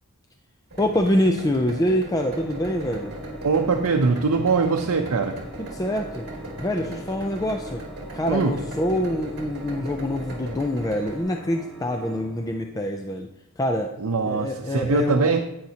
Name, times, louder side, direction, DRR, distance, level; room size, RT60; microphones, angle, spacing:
sound 1, 0.7-11.2, right 1 dB, 45° right, 2.2 m, -38 dB
voice 1, 0.8-3.1 5.6-6.2 6.6-7.8 8.1-13.3 13.6-13.9 14.2-15.4, left 1 dB, 15° left, 4 dB, 0.4 m, -25 dB
Organ, 2.2-13.1, equal, ahead, 1.6 m, -41 dB
voice 2, 3.4-5.4 8.3-8.5 14.0-15.5, right 4 dB, 80° right, 2 dB, 0.6 m, -22 dB
10.5 x 9.3 x 2.9 m, 0.87 s
head